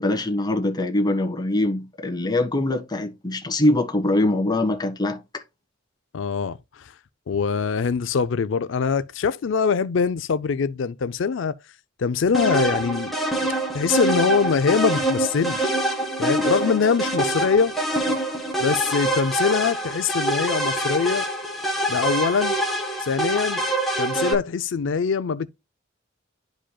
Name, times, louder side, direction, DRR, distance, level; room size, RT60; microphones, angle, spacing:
voice 1, 0.0-5.4, left 1 dB, 20° left, 1.5 m, -23 dB
voice 2, 6.1-6.9 7.3-11.6 12.0-13.1 13.7-15.8 16.2-17.7 18.6-21.3 21.9-22.6 23.0-23.6 24.0-25.5, left 5 dB, 80° left, 0.4 m, -23 dB
sound 1, 12.3-24.3, right 1 dB, ahead, 1.7 m, -25 dB
11.5 x 5.0 x 2.2 m
head